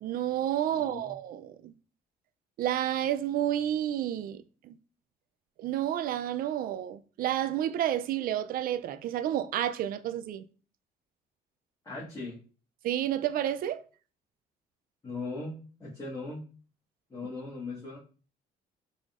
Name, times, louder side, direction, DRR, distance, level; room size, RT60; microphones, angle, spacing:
voice 1, 0.0-1.7 2.6-4.8 5.6-10.4 12.8-13.8, right 11 dB, 60° right, 0.4 m, -30 dB
voice 2, 0.7-1.2 11.8-12.4 15.0-16.4 17.1-18.0, left 3 dB, 25° left, 1.7 m, -39 dB
5.0 x 3.8 x 2.5 m
cardioid pair, 110°, 17 cm